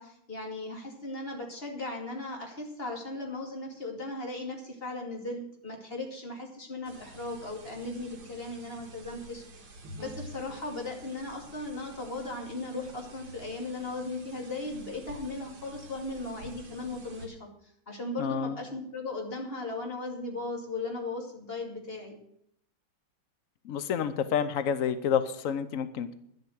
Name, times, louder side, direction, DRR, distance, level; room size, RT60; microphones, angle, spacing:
voice 1, 0.0-9.7 10.0-17.5 17.9-22.2, left 2 dB, 25° left, 2 dB, 2.5 m, -37 dB
sound 1, 6.8-17.3, right 1 dB, 60° right, 2.5 m, -49 dB
voice 2, 18.2-18.6 23.6-26.1, left 8 dB, 85° left, 12 dB, 0.7 m, -29 dB
11.0 x 7.9 x 7.8 m, 0.72 s
omnidirectional pair, 2.3 m